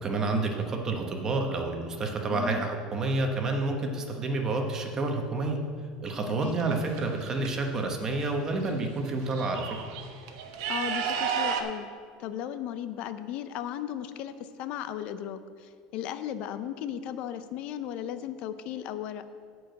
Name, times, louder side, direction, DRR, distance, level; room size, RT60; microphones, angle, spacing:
voice 1, 0.0-5.6 6.0-9.7, right 3 dB, 25° right, 3 dB, 1.0 m, -29 dB
voice 2, 2.3-2.6 6.3-6.7 10.7-11.9 12.2-19.2, left 10 dB, 50° left, 11 dB, 0.6 m, -36 dB
sound 1, 6.4-7.5 8.6-8.7 9.0-11.6, right 8 dB, 85° right, 1.0 m, -33 dB
10.0 x 4.7 x 7.8 m, 2.1 s
cardioid pair, 160°, 2 cm